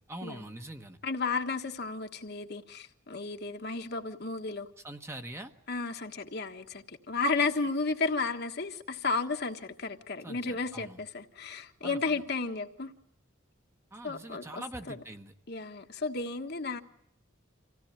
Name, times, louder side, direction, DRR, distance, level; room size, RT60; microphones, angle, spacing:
voice 1, 0.0-1.0 4.8-5.5 10.2-11.0 11.8-12.2 13.9-15.3, right 1 dB, 15° right, 1.1 m, -43 dB
voice 2, 1.0-4.7 5.7-12.9 14.0-15.0 15.5-16.8, left 4 dB, 50° left, 1.4 m, -33 dB
25.5 x 16.5 x 8.8 m
head